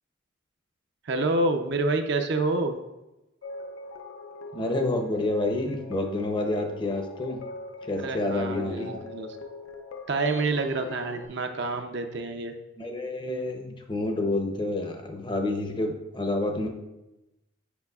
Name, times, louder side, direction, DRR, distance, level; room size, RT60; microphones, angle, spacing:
voice 1, 1.0-2.8 8.0-9.3 10.1-12.5, right 2 dB, 55° right, 6 dB, 0.5 m, -27 dB
sound 1, 3.4-11.3, left 3 dB, 85° left, 0.6 m, -42 dB
voice 2, 4.5-7.4 7.8-9.0 12.8-16.7, left 2 dB, 20° left, 4 dB, 0.6 m, -29 dB
sound 2, 10.2-12.0, right 2 dB, 90° right, 1.9 m, -48 dB
8.0 x 5.6 x 2.3 m, 0.97 s
head